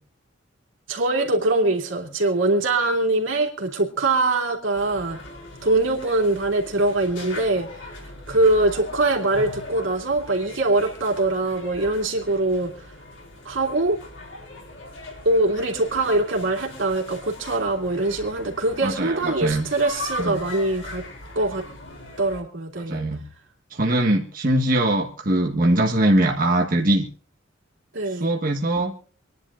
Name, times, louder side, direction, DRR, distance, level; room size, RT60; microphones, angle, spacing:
voice 1, 0.9-5.2 5.6-7.9 8.3-12.9 13.4-14.0 15.2-21.0 21.3-21.7 22.2-23.1 27.9-28.3, right 2 dB, 85° right, 0 dB, 3.1 m, -23 dB
sound 1, 4.7-22.4, left 2 dB, 70° left, 4.9 m, -40 dB
voice 2, 18.8-19.7 20.2-20.4 22.8-23.2 23.7-27.1 28.1-28.9, right 1 dB, 45° right, 0 dB, 1.5 m, -22 dB
26.5 x 11.0 x 2.5 m, 0.42 s
head